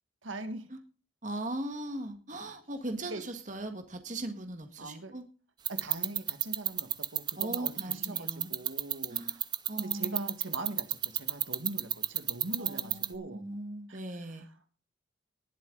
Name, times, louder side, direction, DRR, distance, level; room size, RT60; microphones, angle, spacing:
voice 1, 0.2-0.7 3.1-3.2 4.8-5.2 5.7-9.5 9.8-13.4 13.9-14.5, right 2 dB, 85° right, 8 dB, 1.7 m, -42 dB
voice 2, 1.2-5.2 7.4-8.5 9.1-9.4 9.7-10.3 12.6-14.5, right 1 dB, 40° right, 6 dB, 1.7 m, -39 dB
sound 1, 5.7-13.1, right 10 dB, 20° right, 0.5 m, -28 dB
19.5 x 7.8 x 3.9 m, 0.35 s
head